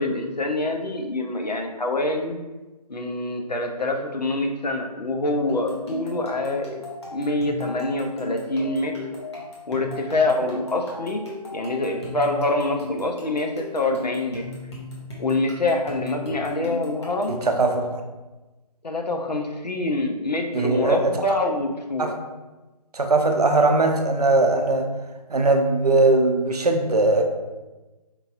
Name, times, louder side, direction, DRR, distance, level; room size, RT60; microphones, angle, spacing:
voice 1, 0.0-2.4 2.9-6.8 7.1-8.9 9.7-11.2 11.5-14.4 15.2-17.3 18.8-22.1, left 2 dB, 80° left, 3 dB, 0.6 m, -25 dB
sound 1, 5.5-17.8, left 2 dB, 40° left, 1.0 m, -37 dB
voice 2, 17.3-18.0 20.5-21.1 22.0-22.2 22.9-24.9 25.3-27.2, right 2 dB, 70° right, 4 dB, 0.5 m, -20 dB
4.6 x 2.5 x 2.4 m, 1.1 s
figure-of-eight pair, 150°, 21 cm